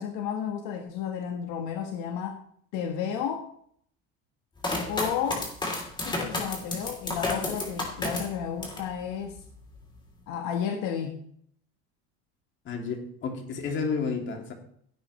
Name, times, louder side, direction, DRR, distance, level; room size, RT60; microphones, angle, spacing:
voice 1, 0.0-2.4 2.7-3.5 4.9-5.4 6.0-9.4 10.3-11.2, left 8 dB, 70° left, 3 dB, 1.6 m, -32 dB
sound 1, 4.6-8.9 9.3-10.0, left 2 dB, 15° left, 3.3 m, -32 dB
voice 2, 12.6-14.5, left 5 dB, 40° left, 2 dB, 2.7 m, -31 dB
16.5 x 9.0 x 3.2 m, 0.64 s
cardioid pair, 135°, 31 cm